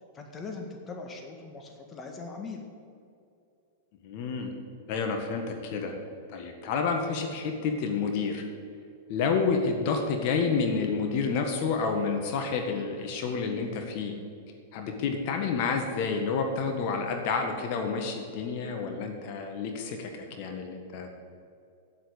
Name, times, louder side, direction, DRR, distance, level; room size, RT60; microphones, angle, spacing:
voice 1, 0.1-2.6, left 4 dB, 25° left, 3 dB, 1.7 m, -40 dB
voice 2, 4.0-4.5 4.9-5.9 6.3-8.4 9.1-14.1 14.7-20.1 20.4-21.2, left 5 dB, 50° left, 4 dB, 1.7 m, -29 dB
8.9 x 8.2 x 8.7 m, 2.5 s
hypercardioid pair, 105°, 0 cm